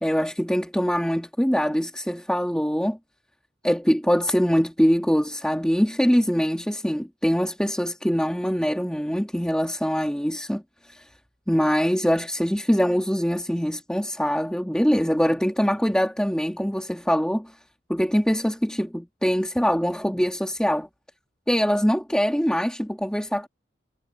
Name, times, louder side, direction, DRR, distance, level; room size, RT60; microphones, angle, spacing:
voice 1, 0.0-3.0 3.6-11.1 11.5-17.5 17.9-20.9 21.5-23.5, equal, 5° left, 2.5 m, -23 dB
head